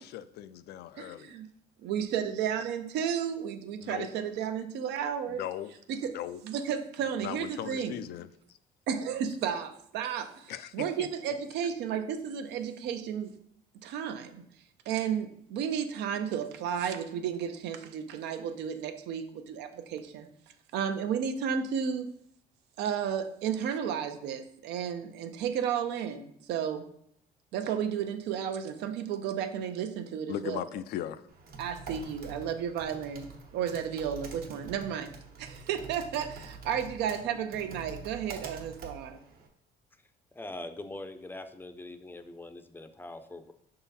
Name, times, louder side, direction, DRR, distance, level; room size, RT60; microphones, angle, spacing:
voice 1, 0.0-1.3 3.8-4.1 5.3-5.7 6.1-6.4 7.2-8.2 10.5-11.1 30.3-31.3, left 11 dB, 75° left, 0.4 m, -38 dB
voice 2, 0.9-1.5 1.8-5.4 5.9-6.1 6.4-7.9 8.9-13.3 13.8-14.4 14.9-20.3 20.7-22.1 22.8-26.8 27.5-30.6 31.6-35.1 35.4-39.2, right 8 dB, 85° right, 0.7 m, -33 dB
Typing, 31.3-39.5, right 4 dB, 60° right, 1.2 m, -46 dB
voice 3, 40.3-43.5, left 2 dB, 10° left, 0.5 m, -42 dB
6.0 x 3.8 x 4.1 m
cardioid pair, 110°, 17 cm